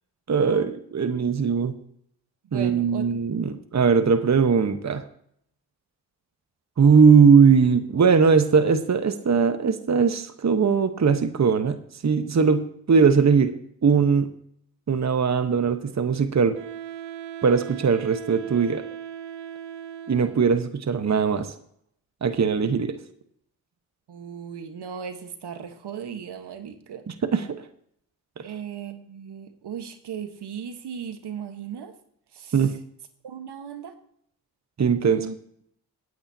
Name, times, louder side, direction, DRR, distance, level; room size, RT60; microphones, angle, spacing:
voice 1, 0.3-1.8 2.5-5.0 6.8-11.8 12.0-13.5 13.8-14.3 14.9-16.6 17.4-18.8 20.1-21.5 22.2-23.0 27.1-27.6 28.4-28.5 32.5-32.7 34.8-35.3, right 5 dB, 40° right, 9 dB, 1.2 m, -20 dB
voice 2, 2.5-3.1 24.1-27.0 28.4-31.9 32.3-32.6 33.2-33.9 35.0-35.4, right 8 dB, 65° right, 8 dB, 1.3 m, -37 dB
Wind instrument woodwind instrument, 16.5-20.6, right 9 dB, 85° right, 0.9 m, -38 dB
17.0 x 9.3 x 2.8 m, 0.69 s
supercardioid pair, 45°, 43 cm